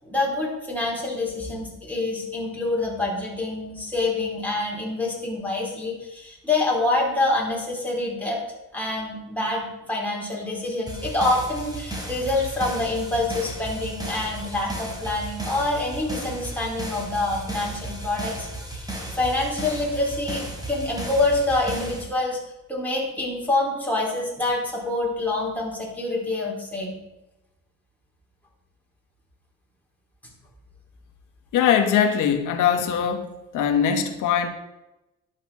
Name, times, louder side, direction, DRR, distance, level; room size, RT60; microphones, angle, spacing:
voice 1, 0.0-8.4 8.7-22.4 22.7-27.0, left 2 dB, 5° left, -3 dB, 4.3 m, -26 dB
sound 1, 10.9-22.0, right 1 dB, 10° right, 4.3 m, -35 dB
voice 2, 31.5-33.3 33.5-34.5, left 8 dB, 85° left, 5 dB, 1.6 m, -21 dB
11.0 x 7.2 x 5.8 m, 0.97 s
cardioid pair, 90°, 30 cm